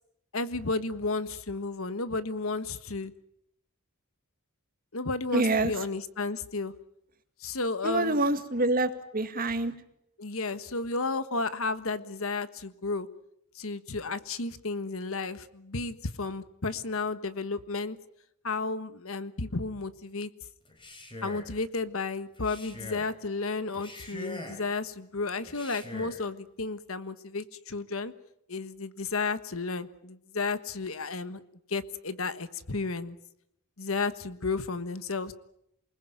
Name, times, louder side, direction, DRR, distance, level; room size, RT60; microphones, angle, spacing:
voice 1, 0.3-3.1 4.9-6.7 7.4-8.2 10.2-13.1 13.5-18.0 18.4-20.3 21.2-28.1 28.5-31.4 31.7-33.2 33.8-35.3, left 3 dB, 65° left, 13 dB, 1.4 m, -33 dB
voice 2, 5.3-5.7 7.8-9.7, right 2 dB, 40° right, 8 dB, 2.0 m, -26 dB
Male speech man speaking, 20.6-21.6 22.3-23.1 23.7-24.7 25.4-26.2, left 1 dB, 25° left, 4.2 m, -43 dB
28.0 x 20.0 x 9.2 m, 0.75 s
head